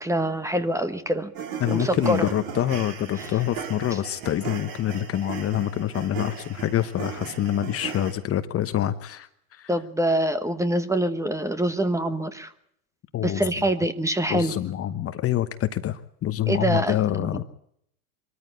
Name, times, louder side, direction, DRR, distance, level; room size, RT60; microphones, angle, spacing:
voice 1, 0.0-1.3 1.7-2.3 9.7-12.5 13.2-14.5 16.5-17.4, right 1 dB, 5° right, 11 dB, 1.2 m, -25 dB
sound 1, 1.3-8.1, right 7 dB, 50° right, 4.2 m, -36 dB
voice 2, 1.6-9.7 13.1-13.5 14.3-17.4, left 12 dB, 30° left, 10 dB, 1.0 m, -26 dB
23.5 x 14.0 x 8.3 m, 0.71 s
hypercardioid pair, 105°, 47 cm